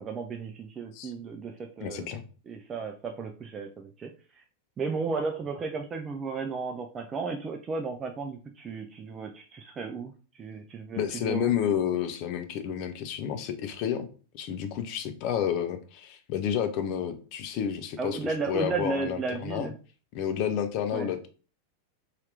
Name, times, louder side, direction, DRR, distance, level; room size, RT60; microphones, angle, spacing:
voice 1, 0.0-2.1 2.5-4.4 4.8-11.5 18.0-19.7 20.9-21.1, right 4 dB, 25° right, 3 dB, 0.3 m, -34 dB
voice 2, 1.8-2.3 10.9-14.1 14.3-19.7 20.1-21.3, left 9 dB, 45° left, 8 dB, 0.5 m, -30 dB
2.8 x 2.4 x 3.2 m, 0.37 s
figure-of-eight pair, 90°, 0 cm